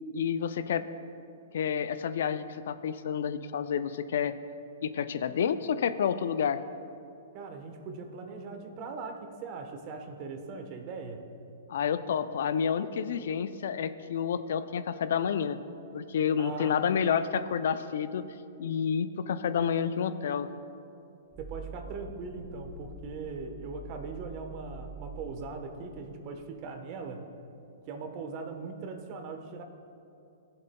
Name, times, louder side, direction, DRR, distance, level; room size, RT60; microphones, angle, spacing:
voice 1, 0.1-0.8 1.5-4.3 4.8-6.6 11.7-15.6 15.9-18.2 18.6-20.5, left 7 dB, 70° left, 12 dB, 0.4 m, -29 dB
voice 2, 7.3-11.2 16.4-16.8 21.4-27.3 27.9-29.6, right 4 dB, 40° right, 5 dB, 1.0 m, -40 dB
sound 1, 21.3-26.2, right 3 dB, 5° right, 1.0 m, -45 dB
16.5 x 7.8 x 2.2 m, 2.7 s
hypercardioid pair, 135°, 0 cm